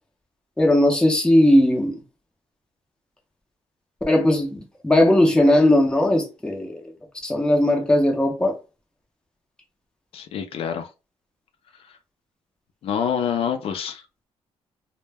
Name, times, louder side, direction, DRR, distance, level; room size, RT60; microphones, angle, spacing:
voice 1, 0.6-2.0 4.1-6.8 7.2-8.5, left 1 dB, 5° left, 0.6 m, -18 dB
voice 2, 10.1-10.9 11.8-12.0 12.8-14.3, left 8 dB, 60° left, 0.4 m, -27 dB
2.1 x 2.1 x 3.3 m
cardioid pair, 145°, 11 cm